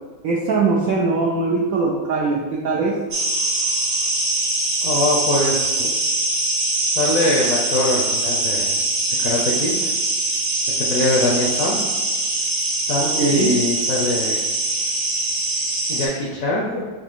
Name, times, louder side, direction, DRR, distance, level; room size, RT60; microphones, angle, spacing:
voice 1, 0.2-3.0 13.0-13.5, right 3 dB, 80° right, -3 dB, 0.8 m, -21 dB
sound 1, 3.1-16.1, right 2 dB, 60° right, 1.3 m, -22 dB
voice 2, 4.8-5.9 7.0-8.7 9.2-9.7 10.8-11.9 12.9-14.4 15.9-16.9, left 2 dB, 70° left, -2 dB, 0.8 m, -22 dB
4.1 x 2.9 x 3.5 m, 1.3 s
omnidirectional pair, 2.0 m